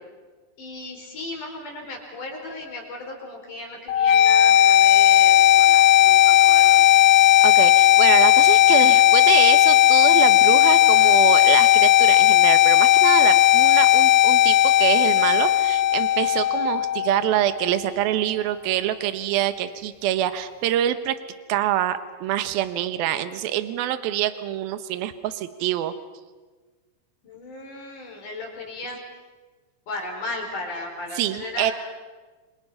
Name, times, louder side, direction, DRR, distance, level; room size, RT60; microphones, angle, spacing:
voice 1, 0.6-7.0 27.2-29.0 29.9-31.7, left 2 dB, 45° left, 2 dB, 5.8 m, -35 dB
sound 1, 3.9-17.9, left 13 dB, 85° left, 2.1 m, -16 dB
voice 2, 7.4-21.2 21.5-25.9 31.2-31.7, right 12 dB, 70° right, 11 dB, 2.5 m, -25 dB
29.0 x 26.0 x 5.8 m, 1.3 s
omnidirectional pair, 5.4 m